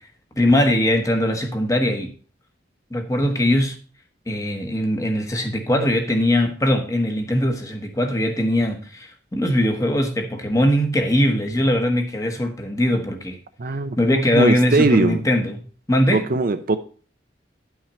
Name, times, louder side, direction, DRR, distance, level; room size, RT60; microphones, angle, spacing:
voice 1, 0.4-2.1 2.9-3.7 4.3-13.4 14.0-15.6 15.9-16.2, left 1 dB, 20° left, 1.2 m, -21 dB
voice 2, 13.6-14.0 14.3-15.2 16.1-16.8, right 3 dB, 50° right, 0.5 m, -20 dB
10.0 x 5.8 x 4.3 m
head